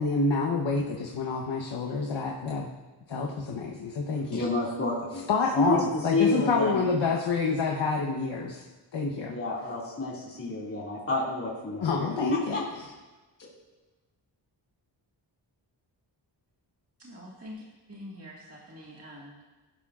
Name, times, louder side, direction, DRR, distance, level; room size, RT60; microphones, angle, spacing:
voice 1, 0.0-2.7 3.1-4.5 5.3-8.6 8.9-9.4 11.8-12.6, left 4 dB, 70° left, -1 dB, 1.1 m, -28 dB
voice 2, 4.3-5.2 5.6-6.9 9.3-12.1 12.5-12.6, left 3 dB, 30° left, -6 dB, 2.4 m, -29 dB
voice 3, 17.0-17.6 17.9-19.4, equal, 30° right, -5 dB, 1.8 m, -45 dB
17.5 x 11.5 x 2.5 m, 1.2 s
wide cardioid pair, 150°, 45 cm